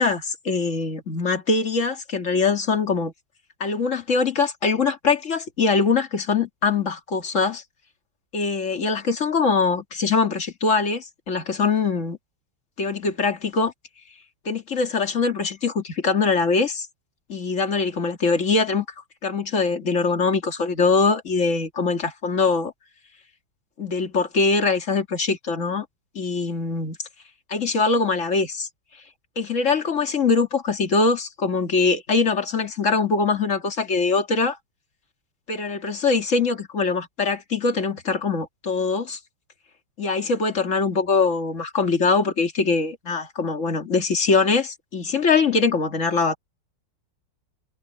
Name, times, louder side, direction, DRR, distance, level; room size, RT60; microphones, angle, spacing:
voice 1, 0.0-3.1 3.6-7.6 8.3-12.2 12.8-13.7 14.4-16.9 17.3-18.9 19.2-22.7 23.8-25.9 26.1-27.0 27.5-28.7 29.4-34.6 35.5-39.2 40.0-46.4, left 4 dB, 40° left, 2.6 m, -22 dB
omnidirectional pair, 2.1 m